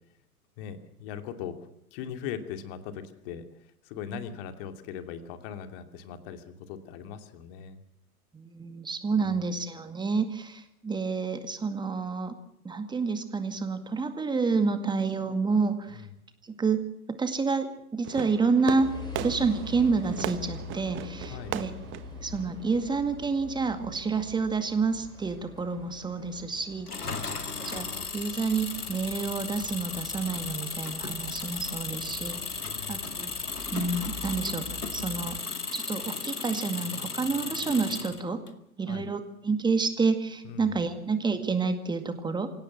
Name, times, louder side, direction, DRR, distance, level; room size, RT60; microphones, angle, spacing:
voice 1, 0.6-1.6 1.9-3.4 3.8-7.8 9.2-9.6 15.9-16.0 21.3-21.6 27.1-27.4 32.6-33.1 38.9-39.1 40.4-40.9, left 8 dB, 40° left, 8 dB, 2.7 m, -40 dB
voice 2, 8.3-12.4 12.6-16.0 16.4-21.7 22.2-27.0 27.6-32.6 32.9-33.3 33.7-35.4 35.7-38.5 38.8-42.5, right 4 dB, 10° right, 8 dB, 2.1 m, -29 dB
Fireworks, 18.0-23.1, right 13 dB, 25° right, 1.3 m, -38 dB
sound 1, 18.8-35.4, left 3 dB, 10° left, 7.2 m, -45 dB
Engine, 26.9-38.5, left 4 dB, 85° left, 2.2 m, -35 dB
25.5 x 17.5 x 7.5 m, 0.76 s
figure-of-eight pair, 105°, 44 cm